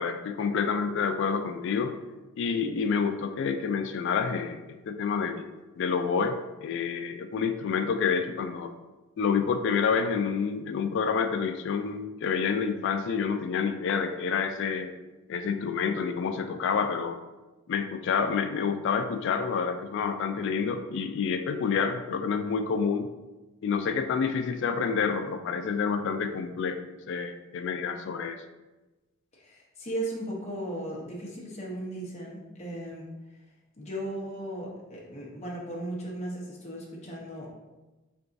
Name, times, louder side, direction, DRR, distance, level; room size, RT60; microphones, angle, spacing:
voice 1, 0.0-1.9 2.4-5.5 5.8-8.7 9.2-14.9 15.3-17.2 17.7-23.1 23.6-26.8 27.1-28.4, left 6 dB, 60° left, 8 dB, 0.3 m, -28 dB
voice 2, 29.3-33.1 33.8-37.5, right 1 dB, 30° left, -3 dB, 0.8 m, -36 dB
3.9 x 3.4 x 2.5 m, 1.1 s
head